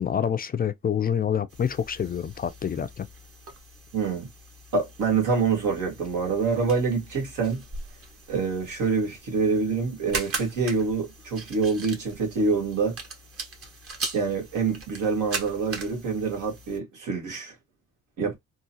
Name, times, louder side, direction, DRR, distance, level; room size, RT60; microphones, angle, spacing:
voice 1, 0.0-3.1, left 8 dB, 30° left, 0.4 m, -27 dB
sound 1, 1.5-16.8, right 3 dB, 50° right, 1.4 m, -40 dB
voice 2, 3.9-4.3 4.7-7.6 8.3-13.0 14.1-17.5 18.2-18.3, right 4 dB, 80° right, 1.8 m, -26 dB
3.7 x 2.4 x 2.8 m
cardioid pair, 90°, 30 cm